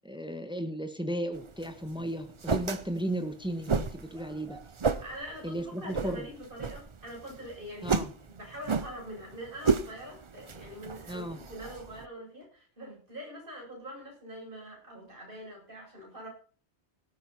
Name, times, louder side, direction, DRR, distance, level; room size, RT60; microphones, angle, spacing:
voice 1, 0.0-4.6 5.4-6.3 7.8-8.1 11.1-11.4, right 1 dB, 5° right, 8 dB, 1.4 m, -35 dB
sound 1, 1.3-12.0, right 5 dB, 35° right, 0.6 m, -34 dB
voice 2, 5.0-8.0 8.3-16.3, equal, 50° right, -2 dB, 7.9 m, -44 dB
17.0 x 9.1 x 4.2 m, 0.40 s
omnidirectional pair, 1.1 m